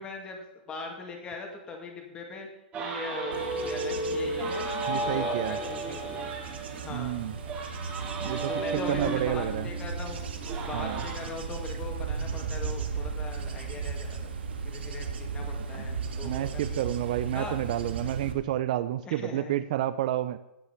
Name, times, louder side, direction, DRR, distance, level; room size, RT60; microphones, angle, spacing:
voice 1, 0.0-2.5 2.8-4.7 5.0-6.3 6.8-7.2 8.5-10.2 10.6-14.3 14.6-16.8 17.3-17.6 19.1-19.6, left 4 dB, 15° left, 2 dB, 2.1 m, -40 dB
sound 1, 2.7-11.3, right 2 dB, 20° right, 2.1 m, -34 dB
Bird / Insect / Wind, 3.3-18.3, right 5 dB, 80° right, 1.7 m, -36 dB
voice 2, 4.9-5.6 6.9-7.3 8.2-8.5 8.9-9.7 10.7-11.0 16.2-20.4, right 13 dB, 45° right, 14 dB, 0.5 m, -30 dB
17.0 x 5.8 x 5.8 m, 0.96 s
hypercardioid pair, 160°, 6 cm